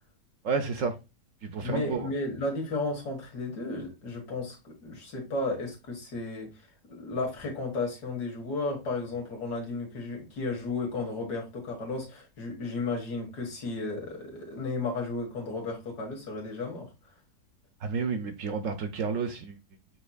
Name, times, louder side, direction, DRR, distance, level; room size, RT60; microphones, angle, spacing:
voice 1, 0.4-1.0 1.4-2.1 17.8-19.6, right 5 dB, 65° right, 0.9 m, -30 dB
voice 2, 1.6-16.9, left 3 dB, 80° left, 2.1 m, -34 dB
7.7 x 2.9 x 2.3 m
omnidirectional pair, 1.7 m